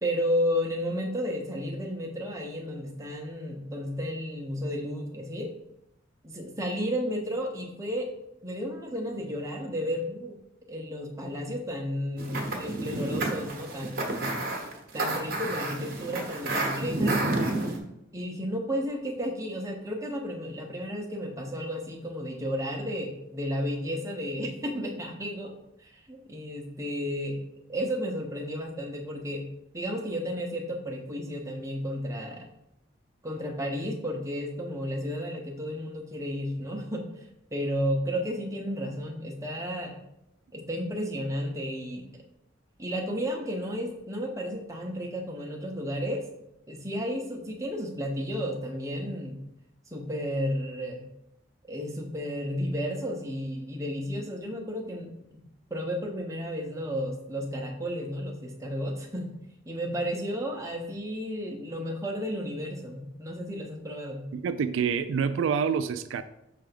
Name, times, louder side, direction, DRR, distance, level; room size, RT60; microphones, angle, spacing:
voice 1, 0.0-5.5 6.2-8.1 8.4-10.4 10.7-14.4 14.9-17.2 18.1-25.5 25.8-27.4 27.7-29.5 29.7-32.5 33.2-37.3 37.5-40.0 40.5-42.1 42.8-46.2 46.7-49.4 49.9-51.0 51.6-55.1 55.7-59.3 59.7-64.3, equal, 15° right, 0.8 m, -32 dB
sound 1, 12.2-17.8, right 2 dB, 50° right, 1.0 m, -30 dB
voice 2, 64.3-66.2, right 6 dB, 80° right, 0.3 m, -27 dB
5.8 x 3.4 x 5.1 m
head